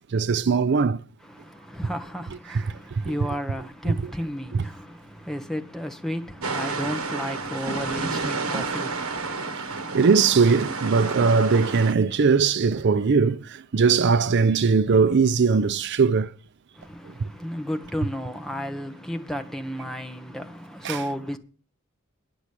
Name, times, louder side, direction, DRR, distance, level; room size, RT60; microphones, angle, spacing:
voice 1, 0.1-1.0 2.5-2.6 3.0-3.1 3.9-4.0 4.5-4.6 8.5-8.6 9.9-16.3 20.8-21.0, right 5 dB, 55° right, 0.5 m, -20 dB
voice 2, 1.2-9.5 16.7-21.4, equal, ahead, 1.1 m, -33 dB
sound 1, 6.4-11.9, right 4 dB, 85° right, 1.1 m, -30 dB
Thunder, 7.0-11.5 12.4-12.5 12.7-12.8 13.9-14.2, right 1 dB, 15° right, 2.9 m, -46 dB
10.5 x 6.0 x 8.3 m
head